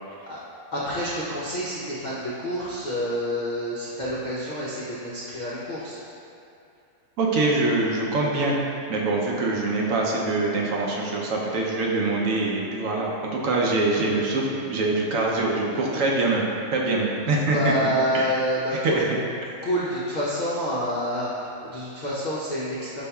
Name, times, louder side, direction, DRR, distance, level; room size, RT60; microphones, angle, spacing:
voice 1, 0.7-6.0 17.5-19.0 19.6-23.0, equal, 65° left, -8 dB, 0.4 m, -28 dB
voice 2, 7.2-8.6 8.9-16.4 16.7-17.7 18.1-18.4 18.7-19.0 19.4-19.5, right 2 dB, 70° right, -2 dB, 0.9 m, -24 dB
5.3 x 4.2 x 2.3 m, 2.6 s
omnidirectional pair, 1.5 m